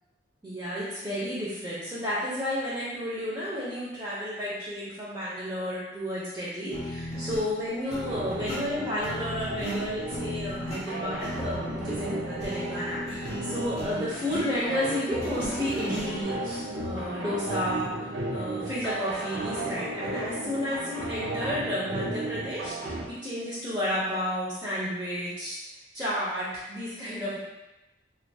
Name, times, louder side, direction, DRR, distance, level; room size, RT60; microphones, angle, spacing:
voice 1, 0.4-25.6 25.9-27.4, left 1 dB, 15° right, -8 dB, 0.5 m, -32 dB
sound 1, 6.7-16.2, equal, 35° left, 0.5 m, -36 dB
sound 2, 8.1-23.1, right 2 dB, 75° right, 0.5 m, -35 dB
2.3 x 2.2 x 2.6 m, 1.0 s
head